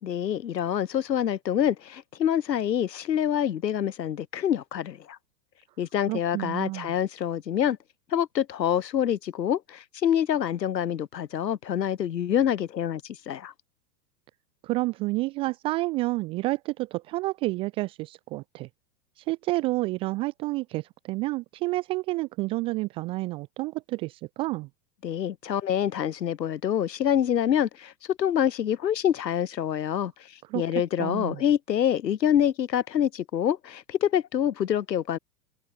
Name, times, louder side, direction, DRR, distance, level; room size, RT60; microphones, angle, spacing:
voice 1, 0.0-5.2 5.8-7.8 8.1-13.5 25.0-30.1 30.5-35.2, left 9 dB, 80° left, 2.5 m, -26 dB
voice 2, 6.1-6.9 14.6-18.7 19.2-24.7 30.5-30.6 31.0-31.4, right 21 dB, 15° right, 0.3 m, -29 dB
hypercardioid pair, 115°, 50 cm